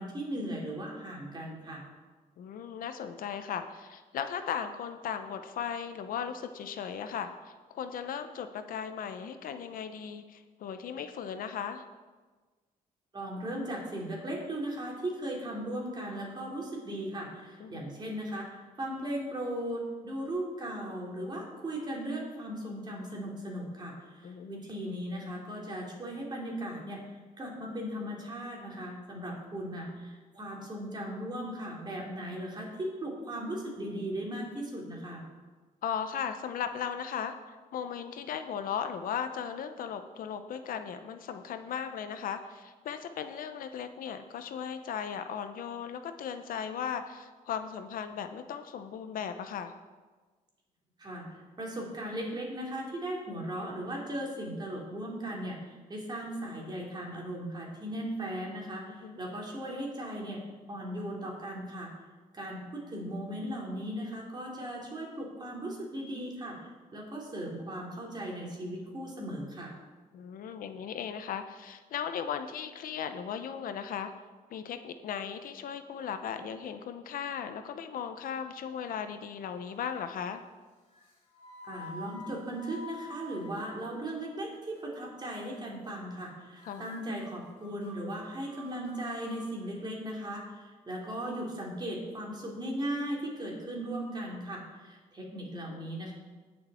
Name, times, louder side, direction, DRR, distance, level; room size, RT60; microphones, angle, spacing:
voice 1, 0.0-1.8 13.1-27.0 27.4-35.2 51.0-60.4 60.7-61.9 62.3-69.7 81.6-96.1, right 1 dB, 30° right, -2 dB, 3.2 m, -37 dB
voice 2, 2.4-11.8 17.6-17.9 24.2-24.6 35.8-49.7 58.9-59.2 70.1-74.1 74.5-80.4 86.6-86.9, left 8 dB, 70° left, 9 dB, 0.8 m, -37 dB
sound 1, 78.7-79.3 79.6-80.2 80.9-84.2 84.5-84.9 85.3-85.6 85.8-85.9 86.2-86.3 86.6-89.6, left 2 dB, 40° left, 4.1 m, -49 dB
18.5 x 6.6 x 4.4 m, 1.3 s
cardioid pair, 115°, 15 cm